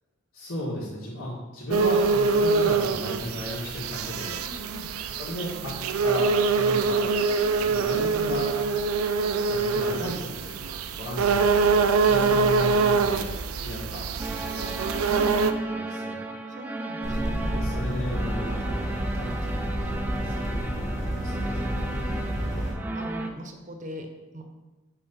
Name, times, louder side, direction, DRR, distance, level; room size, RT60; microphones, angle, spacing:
voice 1, 0.3-4.4 5.1-5.7 6.0-7.0 7.6-8.5 9.5-13.3 13.6-16.3 17.5-20.5 21.2-21.5, equal, 80° left, -8 dB, 1.8 m, -35 dB
sound 1, 1.7-15.5, right 4 dB, 80° right, 0.4 m, -24 dB
voice 2, 4.4-4.9 16.5-17.6 20.9-21.7 22.5-22.6 22.9-24.1 24.3-24.4, equal, 35° right, 5 dB, 0.8 m, -41 dB
sound 2, 14.2-23.3, right 2 dB, 10° right, 0.3 m, -34 dB
sound 3, 17.0-22.7, equal, 50° left, 1.6 m, -30 dB
5.7 x 4.2 x 5.5 m, 1.1 s
head